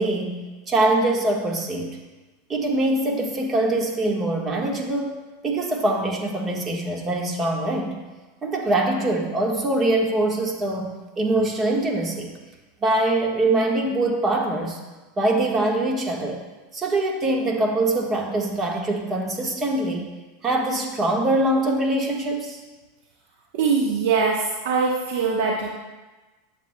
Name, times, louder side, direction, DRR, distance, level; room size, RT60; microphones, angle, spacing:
voice 1, 0.0-2.0 2.5-8.0 8.4-12.3 12.8-14.8 15.2-16.4 16.7-20.1 20.4-22.6, right 2 dB, 25° right, 1 dB, 1.4 m, -23 dB
voice 2, 23.5-25.7, right 5 dB, 65° right, -2 dB, 1.0 m, -22 dB
11.0 x 7.1 x 2.2 m, 1.2 s
hypercardioid pair, 115°, 0 cm